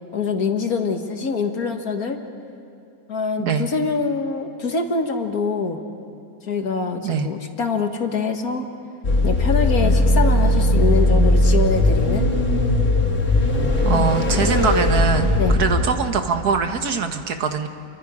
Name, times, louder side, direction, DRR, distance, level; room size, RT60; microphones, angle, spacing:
voice 1, 0.1-2.2 3.1-5.8 6.4-8.7 9.2-12.3 13.9-14.1 15.4-15.6, left 4 dB, 70° left, 5 dB, 1.9 m, -24 dB
voice 2, 3.4-3.7 7.0-7.3 13.8-17.7, right 6 dB, 80° right, 6 dB, 1.9 m, -22 dB
sound 1, 9.0-15.8, left 1 dB, 50° left, 3.0 m, -18 dB
29.5 x 24.0 x 5.0 m, 2.7 s
omnidirectional pair, 1.6 m